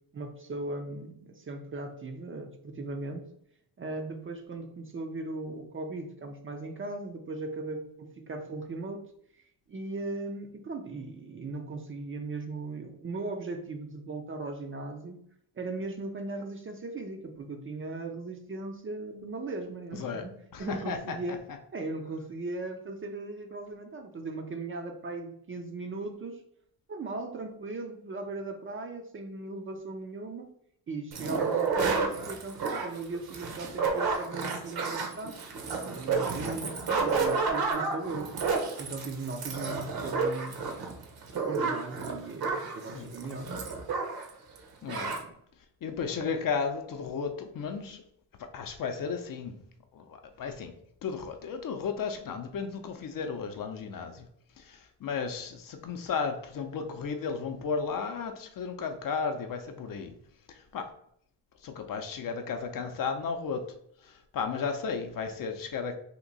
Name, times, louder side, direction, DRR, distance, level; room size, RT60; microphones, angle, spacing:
voice 1, 0.1-3.3 3.8-9.0 9.3-9.4 9.7-15.2 15.6-20.3 20.6-21.4 21.7-26.4 26.9-30.5 30.9-35.4 35.7-38.3 38.8-40.6 41.3-43.5 45.2-45.4, right 3 dB, 30° right, 5 dB, 0.4 m, -38 dB
voice 2, 20.5-21.4 31.3-31.5 42.9-43.4 44.8-45.2 45.8-48.0 48.4-49.6 49.9-50.7 51.0-54.3 54.6-60.2 60.5-60.9 61.6-63.7 64.0-66.0, left 5 dB, 50° left, 6 dB, 0.6 m, -34 dB
sound 1, 31.1-44.3 44.6-44.7 44.9-45.2, right 4 dB, 55° right, 0.9 m, -31 dB
2.9 x 2.6 x 3.9 m, 0.68 s
cardioid pair, 100°, 44 cm